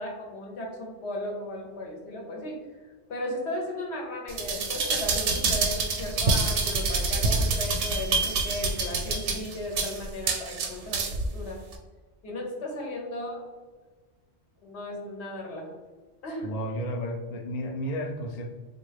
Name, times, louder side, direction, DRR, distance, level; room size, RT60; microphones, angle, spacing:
voice 1, 0.0-2.6 3.1-11.1 11.3-11.6 12.2-13.4 14.6-15.8 16.2-16.5, left 1 dB, 75° left, 0 dB, 1.1 m, -35 dB
sound 1, 4.3-11.3 11.7-11.8, right 3 dB, 80° right, 0.9 m, -27 dB
voice 2, 16.4-18.5, equal, 60° left, 4 dB, 0.4 m, -32 dB
3.6 x 2.4 x 3.3 m, 1.3 s
omnidirectional pair, 1.1 m